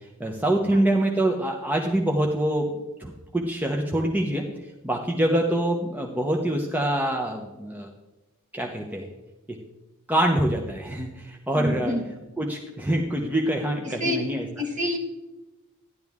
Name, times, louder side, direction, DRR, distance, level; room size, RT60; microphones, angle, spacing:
voice 1, 0.2-2.7 3.0-4.5 4.8-7.9 8.5-9.1 9.5-9.6 10.1-11.9 12.4-14.5, right 1 dB, 10° right, 1 dB, 0.7 m, -25 dB
voice 2, 11.5-12.0 13.8-15.0, left 1 dB, 35° right, 4 dB, 1.4 m, -28 dB
12.5 x 10.5 x 3.5 m, 1.1 s
head